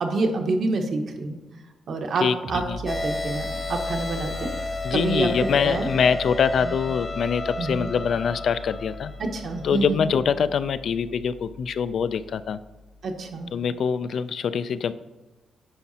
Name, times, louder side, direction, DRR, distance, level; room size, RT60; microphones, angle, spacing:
voice 1, 0.0-1.4 1.9-4.5 4.9-5.9 6.6-6.8 7.6-7.9 9.2-10.2 13.0-13.5, right 3 dB, 60° right, 4 dB, 1.0 m, -27 dB
voice 2, 2.2-2.8 4.8-9.1 9.6-12.6 13.5-14.9, left 7 dB, 65° left, 13 dB, 0.3 m, -24 dB
sound 1, 2.4-13.8, left 1 dB, 45° right, 0.6 m, -40 dB
sound 2, 2.9-9.8, left 2 dB, 25° left, 0.8 m, -33 dB
9.8 x 5.9 x 2.8 m, 1.1 s
cardioid pair, 100°, 0 cm